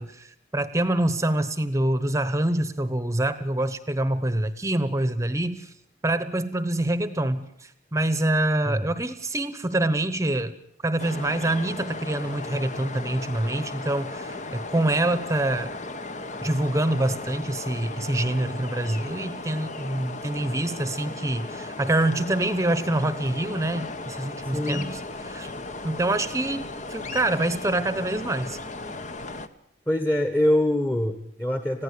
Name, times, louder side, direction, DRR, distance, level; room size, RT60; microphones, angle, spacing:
voice 1, 0.0-5.7 6.0-10.6 10.8-15.7 16.4-25.5 25.8-28.6, right 1 dB, 15° right, 13 dB, 1.0 m, -26 dB
sound 1, 11.0-29.5, left 2 dB, 40° left, 1.2 m, -36 dB
voice 2, 24.5-24.9 29.9-31.8, left 1 dB, 10° left, 8 dB, 1.4 m, -24 dB
21.5 x 15.5 x 8.4 m, 0.75 s
head